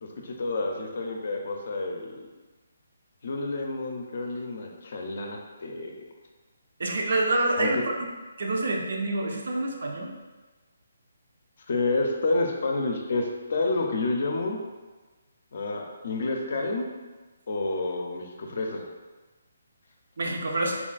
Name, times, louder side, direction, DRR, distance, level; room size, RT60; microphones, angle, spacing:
voice 1, 0.0-2.2 3.2-6.0 7.6-7.8 11.7-14.6 15.5-16.9 17.5-18.8, left 2 dB, 55° left, 2 dB, 0.5 m, -29 dB
voice 2, 6.8-7.8 8.4-10.1 20.2-20.8, right 2 dB, 65° right, 1 dB, 0.5 m, -27 dB
3.8 x 2.3 x 2.4 m, 1.3 s
hypercardioid pair, 160°, 0 cm